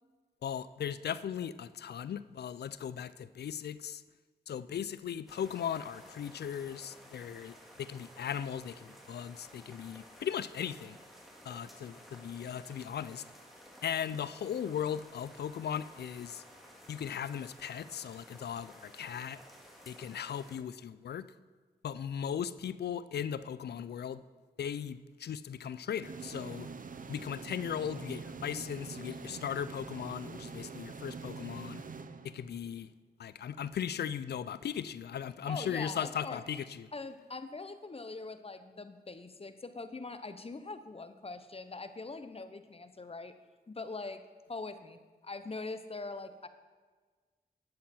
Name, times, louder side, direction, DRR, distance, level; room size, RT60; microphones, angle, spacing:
voice 1, 0.4-4.0 4.5-11.0 11.5-13.2 13.8-16.4 16.9-19.4 19.9-21.3 21.8-24.2 24.6-26.7 27.1-31.8 32.2-32.9 33.2-36.9, left 8 dB, 75° left, 16 dB, 0.4 m, -38 dB
sound 1, 5.3-20.6, equal, ahead, 2.4 m, -55 dB
sound 2, 26.0-32.8, right 5 dB, 55° right, 0.7 m, -45 dB
voice 2, 35.5-36.4 36.9-43.3 43.7-44.2 44.5-46.5, left 3 dB, 35° left, 10 dB, 0.8 m, -42 dB
11.5 x 7.5 x 4.3 m, 1.4 s
cardioid pair, 45°, 17 cm